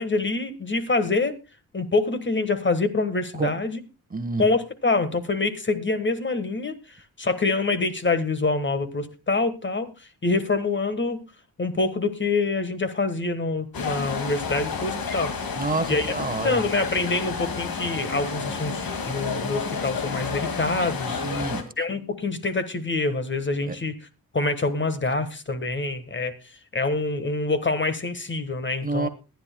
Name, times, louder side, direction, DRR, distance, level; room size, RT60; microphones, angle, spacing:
voice 1, 0.0-1.4 1.7-3.8 4.4-6.8 7.2-9.9 10.2-11.2 11.6-15.3 15.9-16.1 16.4-21.2 21.8-24.0 24.3-26.3 26.7-29.1, left 3 dB, 30° left, 1.4 m, -25 dB
voice 2, 4.1-4.5 15.5-16.6 21.1-21.7 23.7-23.8 28.8-29.1, right 2 dB, 25° right, 1.2 m, -28 dB
sound 1, 13.7-21.6, left 5 dB, 70° left, 2.2 m, -30 dB
21.5 x 10.5 x 2.2 m
cardioid pair, 80°, 36 cm